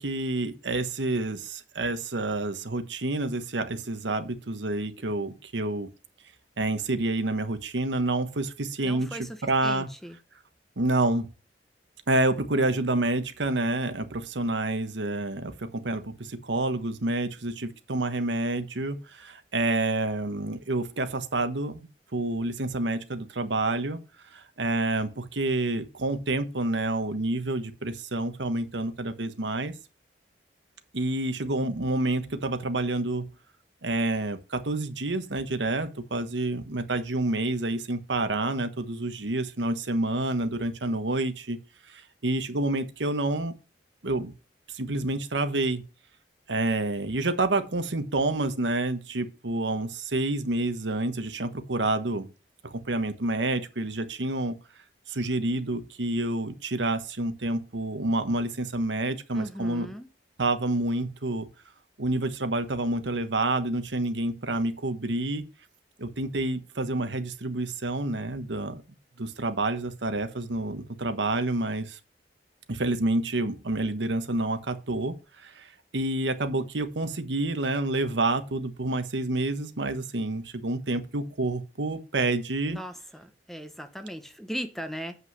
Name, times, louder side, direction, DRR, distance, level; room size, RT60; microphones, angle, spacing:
voice 1, 0.0-5.9 6.6-9.9 10.8-11.3 12.1-24.0 24.3-29.7 30.9-33.3 33.8-41.6 41.9-43.5 44.0-44.3 44.7-45.8 46.5-52.3 52.6-54.5 55.1-59.9 60.4-61.5 62.0-65.5 66.0-68.8 69.2-72.0 72.7-75.2 75.4-82.8, right 2 dB, 90° right, 1.2 m, -28 dB
voice 2, 8.8-9.3 9.6-10.2 59.3-60.1 82.7-85.2, equal, ahead, 0.9 m, -38 dB
7.8 x 5.6 x 6.1 m
head